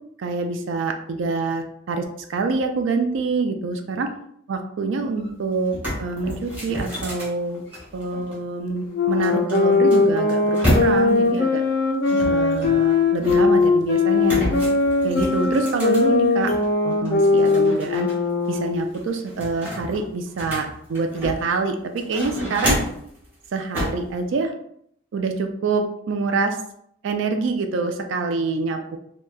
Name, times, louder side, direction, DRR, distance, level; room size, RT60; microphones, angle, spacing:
voice 1, 0.2-4.1 4.5-7.6 7.9-11.6 12.2-14.6 15.0-16.5 16.8-18.1 18.5-22.8 23.5-24.5 25.1-26.6 27.0-29.0, right 4 dB, 65° right, 5 dB, 0.3 m, -26 dB
sound 1, 5.2-5.3 5.6-8.3 9.2-11.3 12.0-13.7 14.2-16.6 17.0-18.1 18.4-18.5 18.9-21.6 22.0-23.1 23.7-24.1, equal, 10° right, 0.8 m, -29 dB
sound 2, 8.9-18.9, left 4 dB, 50° left, 0.4 m, -20 dB
2.8 x 2.2 x 2.3 m, 0.70 s
head